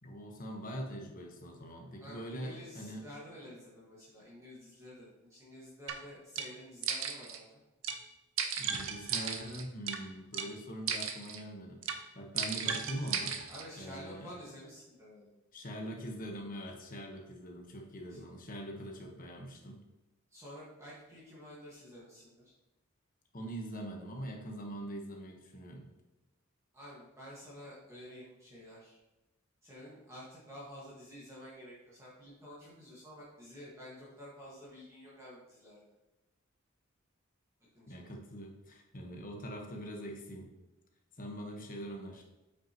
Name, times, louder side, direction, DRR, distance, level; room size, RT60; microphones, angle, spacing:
voice 1, 0.0-3.0 8.6-13.4 13.8-14.3 15.5-19.8 23.3-25.9 37.9-40.5 41.2-42.2, right 1 dB, 40° left, 2 dB, 1.2 m, -43 dB
voice 2, 2.0-7.6 13.5-15.3 18.1-18.2 20.3-22.5 26.7-29.0 29.6-35.8 37.7-38.0, equal, 15° right, -7 dB, 1.6 m, -50 dB
sound 1, 5.9-6.0 6.4-6.5 6.8-7.4 7.8-8.0 8.4-10.0 10.3-10.5 10.9-11.4 11.8-12.0 12.4-13.6, right 7 dB, 65° right, 0.7 m, -35 dB
8.1 x 6.0 x 2.9 m, 1.0 s
head